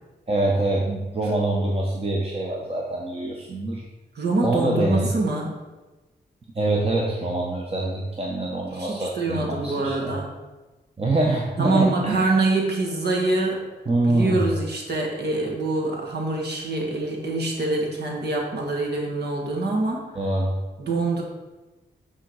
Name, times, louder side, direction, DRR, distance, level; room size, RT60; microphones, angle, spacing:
voice 1, 0.3-3.8 4.4-5.1 6.5-10.1 11.0-12.3 13.9-14.5 20.1-20.6, right 2 dB, 35° right, -2 dB, 1.1 m, -25 dB
voice 2, 4.1-5.5 8.7-10.3 11.6-13.6 14.1-20.0 20.8-21.2, right 2 dB, 70° right, -2 dB, 1.7 m, -25 dB
9.0 x 3.9 x 4.8 m, 1.2 s
cardioid pair, 75°, 18 cm